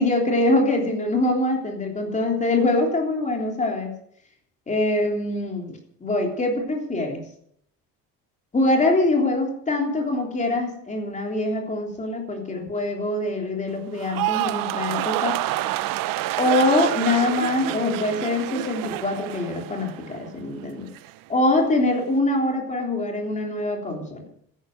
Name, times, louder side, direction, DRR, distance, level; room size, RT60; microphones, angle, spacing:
voice 1, 0.0-3.9 4.7-7.2 8.5-15.4 16.4-20.9 21.3-24.2, left 2 dB, 20° left, 2 dB, 3.4 m, -24 dB
sound 1, 14.0-20.3 20.6-21.1, right 16 dB, 85° right, 0.8 m, -28 dB
13.5 x 11.0 x 7.8 m, 0.68 s
cardioid pair, 150°, 32 cm